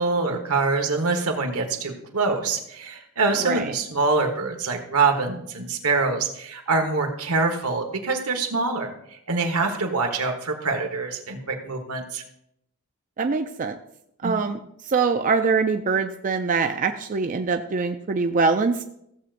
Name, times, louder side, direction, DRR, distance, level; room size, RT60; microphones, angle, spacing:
voice 1, 0.0-8.9 9.3-12.2 14.2-14.3, right 3 dB, 80° right, 3 dB, 1.4 m, -25 dB
voice 2, 3.4-3.7 13.2-13.8 14.2-18.8, right 4 dB, 35° right, 6 dB, 0.4 m, -23 dB
15.5 x 7.7 x 2.6 m, 0.77 s
head